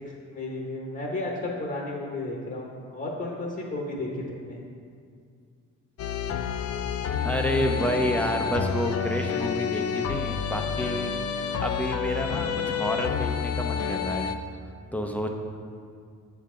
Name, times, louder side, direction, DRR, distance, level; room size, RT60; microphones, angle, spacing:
voice 1, 0.1-4.6, left 2 dB, 35° left, -1 dB, 1.1 m, -33 dB
sound 1, 6.0-14.3, left 7 dB, 55° left, 0.5 m, -29 dB
voice 2, 7.2-14.4 14.9-15.3, equal, 5° left, 2 dB, 0.6 m, -29 dB
8.0 x 5.6 x 3.8 m, 2.2 s
cardioid pair, 90°, 30 cm